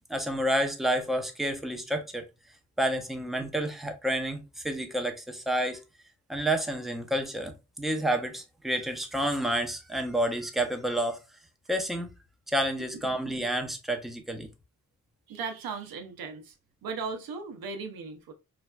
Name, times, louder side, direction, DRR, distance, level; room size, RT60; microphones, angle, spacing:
voice 1, 0.1-2.2 2.8-5.8 6.3-11.2 11.7-12.1 12.5-14.5, right 1 dB, ahead, 0.7 m, -29 dB
voice 2, 15.3-16.6 16.8-18.3, right 4 dB, 90° right, 0.6 m, -37 dB
3.2 x 2.3 x 2.3 m
cardioid pair, 50°, 35 cm